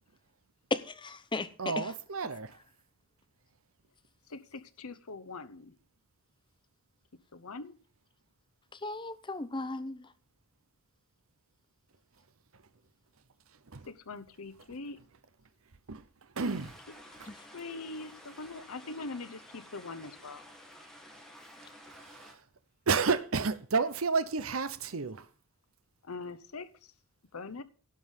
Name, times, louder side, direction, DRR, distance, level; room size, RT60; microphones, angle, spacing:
voice 1, 0.7-1.5 1.8-1.9 8.8-10.0 17.3-17.4, left 2 dB, 20° left, 0.8 m, -35 dB
voice 2, 1.6-2.6 13.7-13.8 15.9-16.0 16.4-16.7 17.2-17.3 22.1-22.3 22.9-25.2, right 4 dB, 70° right, 0.8 m, -31 dB
voice 3, 4.3-5.7 7.3-7.8 13.9-15.0 17.5-20.5 26.0-26.7 27.3-27.6, left 3 dB, 85° left, 1.0 m, -42 dB
sound 1, 16.4-22.3, equal, ahead, 2.2 m, -52 dB
12.0 x 5.6 x 8.1 m
head